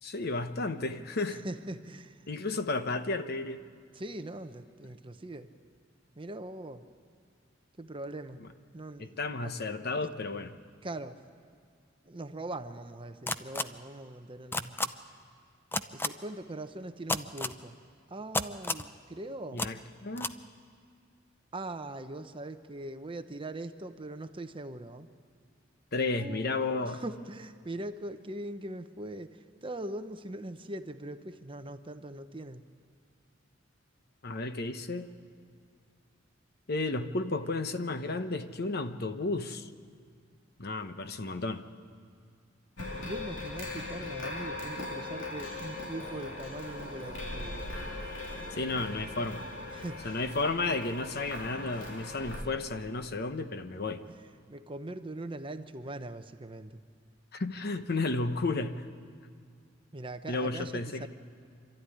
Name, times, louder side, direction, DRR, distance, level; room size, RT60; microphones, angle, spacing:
voice 1, 0.0-1.4 2.3-3.6 8.4-8.5 9.0-10.5 19.5-20.4 25.9-27.0 34.2-35.1 36.7-39.7 40.6-41.6 48.6-49.5 50.0-54.0 57.3-58.9 60.3-61.1, left 3 dB, 55° left, 9 dB, 1.0 m, -33 dB
voice 2, 1.3-2.3 3.9-5.5 6.2-6.8 7.8-8.4 8.7-9.5 10.8-11.2 12.0-14.9 15.9-17.7 18.1-19.6 21.5-25.1 26.1-32.7 43.0-47.6 49.7-50.1 54.1-56.8 59.9-61.1, right 1 dB, 25° right, 9 dB, 0.8 m, -41 dB
sound 1, 13.3-13.6 14.5-14.9 15.7-16.1 17.1-17.5 18.3-18.9 19.6-19.7 20.2-20.3, left 2 dB, 10° left, 0.5 m, -30 dB
sound 2, 42.8-52.4, left 2 dB, 70° left, 3.2 m, -39 dB
26.5 x 13.0 x 10.0 m, 2.2 s
head